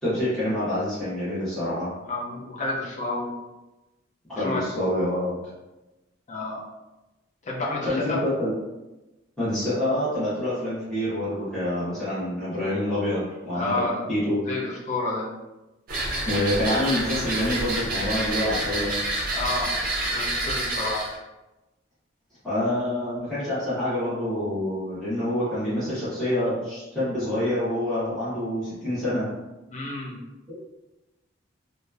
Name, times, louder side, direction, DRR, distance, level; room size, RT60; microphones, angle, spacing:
voice 1, 0.0-1.9 4.3-5.3 7.9-8.5 9.4-13.8 14.1-14.4 16.2-18.9 22.4-29.3 30.5-30.6, left 1 dB, 5° left, -15 dB, 0.9 m, -27 dB
voice 2, 2.0-3.3 4.4-4.6 6.3-6.7 7.4-8.2 13.5-14.1 14.5-15.3 19.3-21.0 29.7-30.2, left 2 dB, 35° left, -3 dB, 0.5 m, -30 dB
sound 1, 15.9-21.2, right 2 dB, 45° right, 0.5 m, -28 dB
2.9 x 2.0 x 2.3 m, 1.0 s
head